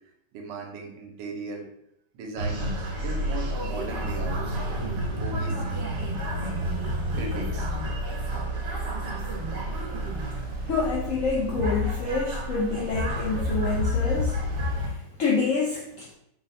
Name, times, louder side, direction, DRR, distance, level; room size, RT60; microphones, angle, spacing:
voice 1, 0.3-1.6 2.1-4.6 5.1-5.9 7.1-7.7, right 3 dB, 90° right, 1 dB, 1.3 m, -37 dB
sound 1, 2.4-14.9, equal, 70° right, 1.3 m, -29 dB
voice 2, 10.7-14.4 14.8-16.1, left 4 dB, 75° left, -3 dB, 0.7 m, -27 dB
3.5 x 2.1 x 4.0 m, 0.79 s
omnidirectional pair, 1.9 m